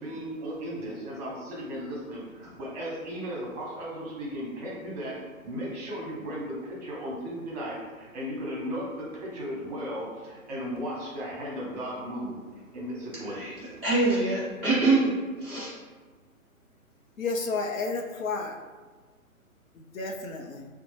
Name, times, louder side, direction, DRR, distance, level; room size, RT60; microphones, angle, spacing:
voice 1, 0.0-5.2 5.4-12.4 12.7-13.5, equal, 30° right, -5 dB, 1.0 m, -36 dB
voice 2, 13.2-13.5 13.8-15.7, right 3 dB, 10° left, -16 dB, 0.5 m, -25 dB
voice 3, 17.2-18.6 19.8-20.7, left 3 dB, 70° left, 2 dB, 0.6 m, -31 dB
3.7 x 2.2 x 3.1 m, 1.4 s
figure-of-eight pair, 135°, 43 cm